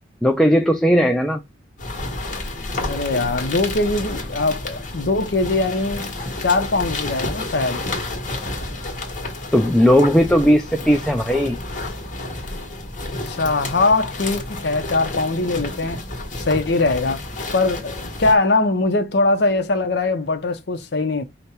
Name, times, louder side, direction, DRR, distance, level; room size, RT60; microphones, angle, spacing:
voice 1, 0.2-1.4 9.5-11.6, equal, 5° left, 0.4 m, -17 dB
sound 1, 1.8-18.4, left 2 dB, 45° left, 1.3 m, -30 dB
voice 2, 2.9-6.2 6.4-7.8 13.1-16.1 16.5-17.2 17.5-21.2, left 3 dB, 65° left, 0.7 m, -21 dB
5.1 x 2.1 x 4.3 m
head